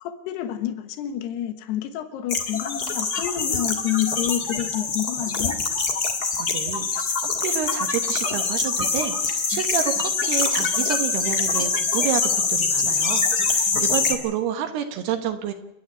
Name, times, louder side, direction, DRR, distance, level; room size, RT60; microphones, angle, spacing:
voice 1, 0.0-5.6, left 11 dB, 85° left, 9 dB, 3.3 m, -28 dB
sound 1, 2.3-14.1, left 4 dB, 40° left, 1.3 m, -24 dB
voice 2, 6.4-15.5, right 9 dB, 80° right, 6 dB, 3.2 m, -29 dB
30.0 x 10.0 x 8.6 m, 0.83 s
omnidirectional pair, 4.6 m